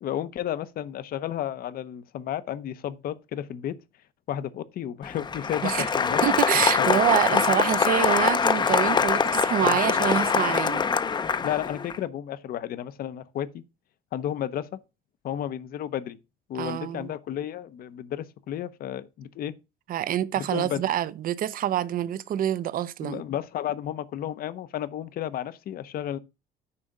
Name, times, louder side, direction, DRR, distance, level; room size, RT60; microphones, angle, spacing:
voice 1, 0.0-3.8 4.3-6.2 6.8-7.0 7.3-7.4 9.6-9.8 11.4-13.6 14.1-14.8 15.2-16.2 16.5-19.5 20.4-20.8 23.0-26.2, left 11 dB, 60° left, 0.8 m, -32 dB
Applause, 5.0-12.0, left 5 dB, 25° left, 0.6 m, -24 dB
voice 2, 6.2-10.9 16.5-17.1 19.9-23.2, right 11 dB, 55° right, 0.7 m, -26 dB
9.7 x 3.5 x 6.5 m
cardioid pair, 110°, 17 cm